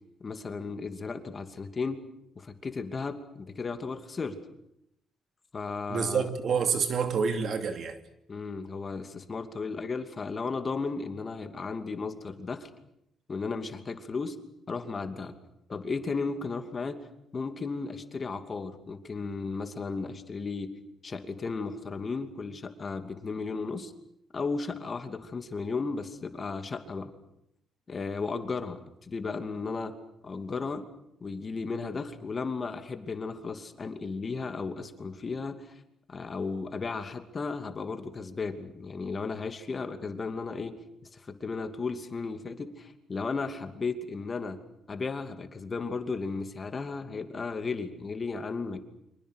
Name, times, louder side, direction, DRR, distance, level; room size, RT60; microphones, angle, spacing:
voice 1, 0.2-2.0 2.4-4.4 5.5-6.3 8.3-12.7 13.3-14.4 14.7-15.3 15.7-17.0 17.3-20.7 21.0-23.9 24.3-27.1 27.9-29.9 30.2-30.8 31.2-35.7 36.1-40.8 41.1-44.6 44.9-48.8, left 4 dB, 35° left, 2.6 m, -35 dB
voice 2, 5.9-8.0, right 6 dB, 60° right, 2.7 m, -28 dB
29.0 x 25.0 x 6.5 m
cardioid pair, 90°, 0 cm